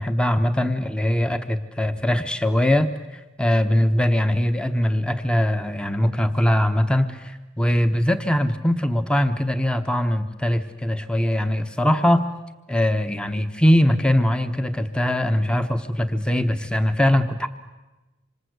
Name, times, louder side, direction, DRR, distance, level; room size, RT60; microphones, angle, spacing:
voice 1, 0.0-12.3 12.7-17.5, left 1 dB, 5° left, 8 dB, 1.1 m, -21 dB
26.5 x 26.0 x 8.1 m, 1.1 s
head